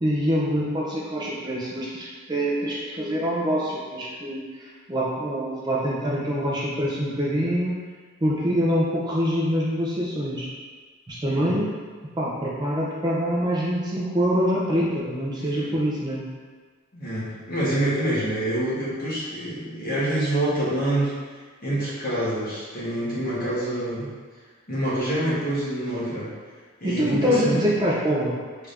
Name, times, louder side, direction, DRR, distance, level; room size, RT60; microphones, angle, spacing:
voice 1, 0.0-7.8 8.2-10.5 11.1-11.7 12.2-16.2 26.8-28.4, equal, 20° right, -6 dB, 0.5 m, -25 dB
voice 2, 11.3-11.6 15.5-15.8 16.9-21.1 21.6-24.1 24.7-26.3 26.8-27.7, right 1 dB, 45° left, -9 dB, 1.2 m, -26 dB
3.4 x 2.6 x 3.3 m, 1.5 s
head